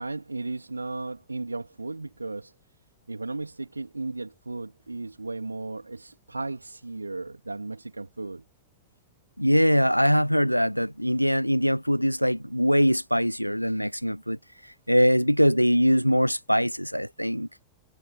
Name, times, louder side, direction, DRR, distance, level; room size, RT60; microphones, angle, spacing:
voice 1, 0.0-2.5 3.1-8.4, right 3 dB, 80° right, 2.5 m, -35 dB
voice 2, 9.4-14.4 14.9-17.5, equal, 90° left, 0.4 m, -22 dB
figure-of-eight pair, 90°, 0 cm